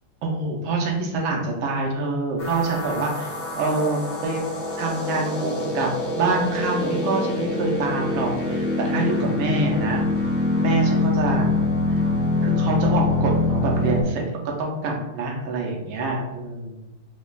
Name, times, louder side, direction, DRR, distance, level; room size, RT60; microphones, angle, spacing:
voice 1, 0.2-3.3 3.6-4.5 4.8-5.9 6.2-10.0 10.6-11.5 11.9-12.0 12.4-14.2 14.6-16.8, right 3 dB, 70° right, -1 dB, 1.5 m, -25 dB
sound 1, 2.4-14.0, left 2 dB, 75° left, 0.5 m, -24 dB
5.2 x 2.3 x 2.4 m, 0.97 s
omnidirectional pair, 2.4 m